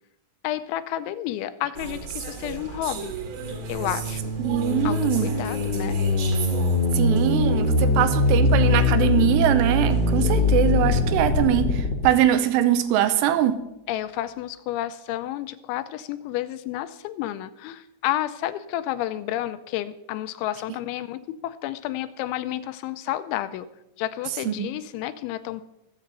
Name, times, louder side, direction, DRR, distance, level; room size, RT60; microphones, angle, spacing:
voice 1, 0.4-3.1 3.7-4.3 4.8-6.0 10.2-10.7 13.9-23.7 24.0-25.6, left 13 dB, 85° left, 13 dB, 3.0 m, -31 dB
sound 1, 1.8-11.2, right 5 dB, 60° right, 3.0 m, -37 dB
sound 2, 3.3-12.1, left 2 dB, 60° left, 1.2 m, -22 dB
voice 2, 4.4-5.3 6.9-13.6 24.5-24.7, right 11 dB, 80° right, 11 dB, 2.7 m, -22 dB
23.5 x 7.9 x 4.0 m, 0.88 s
omnidirectional pair, 5.4 m